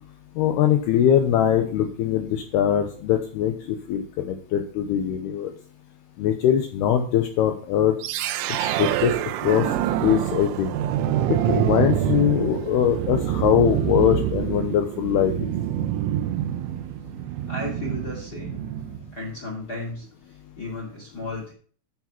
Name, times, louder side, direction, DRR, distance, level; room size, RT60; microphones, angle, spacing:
voice 1, 0.4-5.5 6.2-8.0 8.6-9.2 9.4-9.7 10.0-10.7 11.3-15.4, left 10 dB, 90° left, 5 dB, 2.3 m, -22 dB
sound 1, 8.0-19.1, right 11 dB, 85° right, 3.3 m, -26 dB
voice 2, 17.5-18.6 19.1-21.5, left 2 dB, 30° left, 0 dB, 1.9 m, -34 dB
13.0 x 4.9 x 5.9 m, 0.43 s
omnidirectional pair, 5.6 m